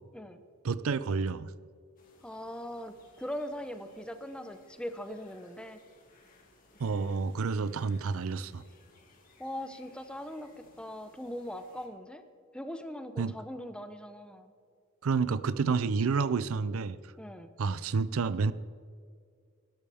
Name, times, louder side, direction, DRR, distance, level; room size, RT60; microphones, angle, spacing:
voice 1, 0.6-1.5 6.8-8.6 13.2-13.3 15.0-17.0 17.6-18.5, right 4 dB, 70° right, 16 dB, 0.5 m, -29 dB
sound 1, 2.0-11.9, left 2 dB, 40° left, 2.4 m, -62 dB
voice 2, 2.2-5.8 9.4-12.3 12.5-14.5 17.2-17.5, equal, 5° left, 9 dB, 0.7 m, -40 dB
19.0 x 12.5 x 3.5 m, 2.2 s
head